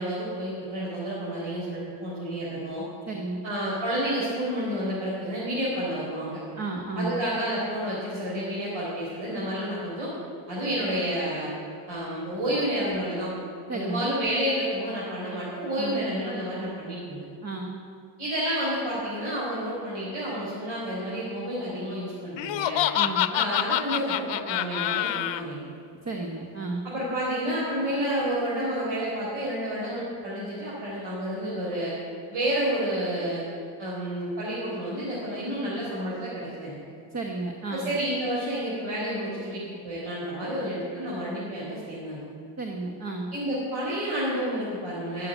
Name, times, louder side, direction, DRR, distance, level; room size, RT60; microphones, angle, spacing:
voice 1, 0.0-2.8 3.4-6.4 7.0-10.1 10.5-11.5 11.9-13.3 13.7-17.2 18.2-22.8 23.3-25.6 26.8-31.9 32.3-33.4 33.8-36.8 37.7-42.2 43.3-45.3, equal, 90° right, -8 dB, 4.2 m, -30 dB
voice 2, 3.1-3.4 6.5-7.2 13.7-14.1 15.8-16.1 17.4-17.8 22.9-23.3 26.0-26.9 37.1-37.9 42.6-43.3, right 2 dB, 35° right, 1 dB, 1.2 m, -33 dB
Laughter, 22.4-25.4, left 13 dB, 70° left, 0.6 m, -26 dB
12.5 x 7.8 x 9.2 m, 2.4 s
cardioid pair, 125°, 46 cm